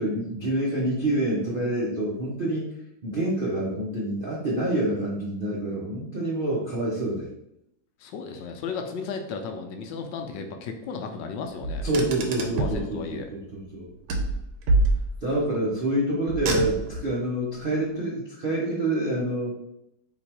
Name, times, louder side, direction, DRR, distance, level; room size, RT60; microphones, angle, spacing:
voice 1, 0.0-2.7 3.0-7.3 11.8-13.9 15.2-19.6, right 1 dB, 60° right, -5 dB, 0.5 m, -27 dB
voice 2, 8.0-11.9 12.4-13.3 15.6-15.7, left 5 dB, 75° left, 5 dB, 1.2 m, -35 dB
Car, 11.6-12.9 14.1-15.4 16.3-17.1, right 2 dB, 90° right, 1.5 m, -26 dB
4.0 x 3.0 x 4.3 m, 0.81 s
omnidirectional pair, 2.1 m